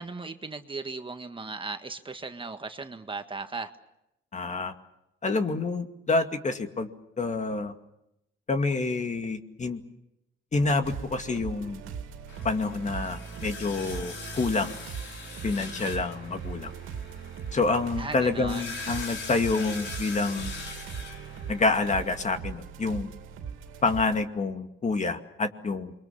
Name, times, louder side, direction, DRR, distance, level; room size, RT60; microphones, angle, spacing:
voice 1, 0.0-3.7 18.0-18.7, right 3 dB, 25° right, 7 dB, 1.6 m, -37 dB
voice 2, 4.3-4.7 5.2-6.9 7.2-7.7 8.5-9.8 10.5-11.8 12.4-14.7 15.4-16.7 17.5-20.5 21.5-23.1 23.8-25.9, left 3 dB, 35° left, 6 dB, 2.3 m, -27 dB
sound 1, 10.8-24.2, right 7 dB, 90° right, 2.7 m, -40 dB
sound 2, 12.3-22.3, left 4 dB, 75° left, 6.4 m, -42 dB
28.5 x 23.0 x 7.2 m, 0.83 s
cardioid pair, 90°, 20 cm